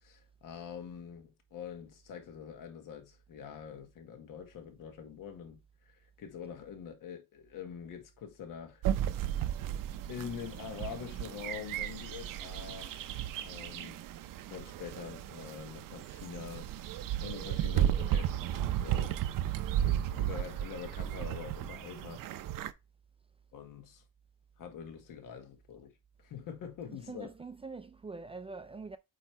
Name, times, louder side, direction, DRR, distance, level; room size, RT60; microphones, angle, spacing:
voice 1, 0.0-5.6 5.9-8.9 10.1-14.0 14.5-19.2 19.5-22.2 23.5-24.0 24.6-25.9 26.2-27.3, left 8 dB, 75° left, 1.6 m, -45 dB
sound 1, 8.8-22.7, right 11 dB, 80° right, 0.7 m, -34 dB
voice 2, 26.9-29.0, right 4 dB, 20° right, 0.4 m, -44 dB
8.5 x 3.1 x 4.5 m
cardioid pair, 150°, 33 cm